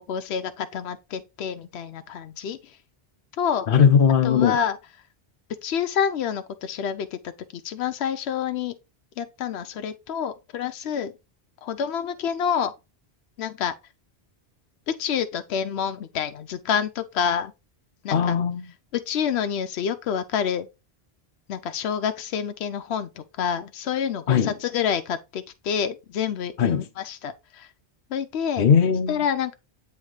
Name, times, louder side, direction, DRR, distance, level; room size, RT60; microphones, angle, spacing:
voice 1, 0.0-2.8 3.4-3.7 4.2-4.8 5.6-8.7 9.2-11.1 11.6-12.7 13.4-13.7 14.9-17.5 18.0-18.3 18.9-20.7 21.5-27.7 28.1-28.7 29.1-29.5, left 8 dB, 85° left, 0.9 m, -28 dB
voice 2, 3.7-4.6 18.1-18.7 24.3-24.5 26.6-26.9 28.6-29.3, left 7 dB, 60° left, 0.8 m, -19 dB
7.8 x 3.1 x 4.7 m
omnidirectional pair, 1.1 m